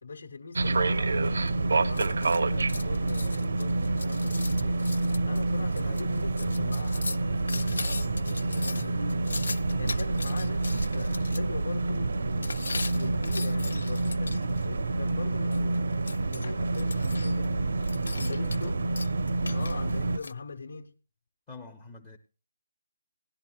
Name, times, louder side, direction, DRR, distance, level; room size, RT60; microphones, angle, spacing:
voice 1, 0.0-4.8 5.3-9.4 9.8-12.7 12.9-15.8 16.2-17.6 18.1-18.9 19.5-20.9, left 4 dB, 60° left, 1.1 m, -41 dB
sound 1, 0.6-20.2, right 2 dB, 65° right, 0.6 m, -28 dB
sound 2, 1.5-11.4 12.4-14.7 15.5-17.5 17.8-18.7 19.0-20.3, left 3 dB, 85° left, 0.6 m, -39 dB
voice 2, 18.4-18.8 19.4-19.7 21.5-22.2, left 4 dB, 10° left, 0.5 m, -46 dB
18.0 x 11.5 x 2.3 m
hypercardioid pair, 180°, 0 cm